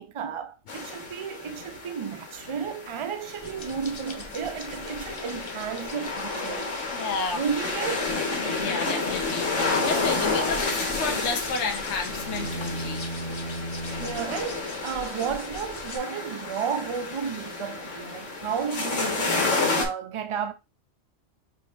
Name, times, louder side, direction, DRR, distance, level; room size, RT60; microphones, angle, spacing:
voice 1, 0.0-6.7 7.3-8.2 14.0-20.5, right 7 dB, 45° right, 0.4 m, -33 dB
sound 1, 0.7-19.9, left 3 dB, 90° left, 1.6 m, -31 dB
sound 2, 3.3-16.0, left 3 dB, 30° left, 0.6 m, -43 dB
voice 2, 6.9-7.4 8.6-13.0, left 4 dB, 65° left, 1.0 m, -31 dB
sound 3, 12.1-14.3, right 1 dB, 70° right, 0.9 m, -35 dB
5.6 x 2.7 x 3.2 m
omnidirectional pair, 1.3 m